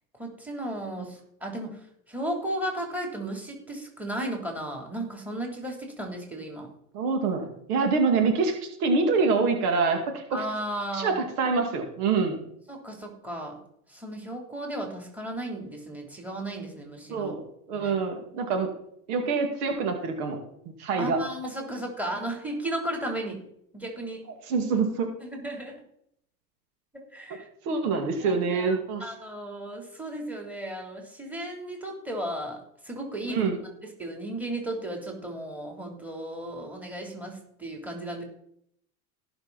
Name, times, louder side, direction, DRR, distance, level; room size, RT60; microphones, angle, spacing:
voice 1, 0.2-1.8 2.1-6.7 10.3-11.2 12.7-13.6 13.9-17.3 17.7-17.9 21.0-23.4 23.7-24.2 25.3-25.8 26.9-27.5 28.2-32.6 32.8-33.5 34.0-38.2, right 1 dB, 5° right, 2 dB, 3.4 m, -35 dB
voice 2, 6.9-10.4 10.9-12.4 17.1-18.7 19.1-20.4 20.7-21.2 24.5-25.1 27.7-29.0 33.3-33.6, right 4 dB, 70° right, 4 dB, 2.4 m, -26 dB
17.5 x 6.1 x 4.1 m, 0.71 s
hypercardioid pair, 100°, 46 cm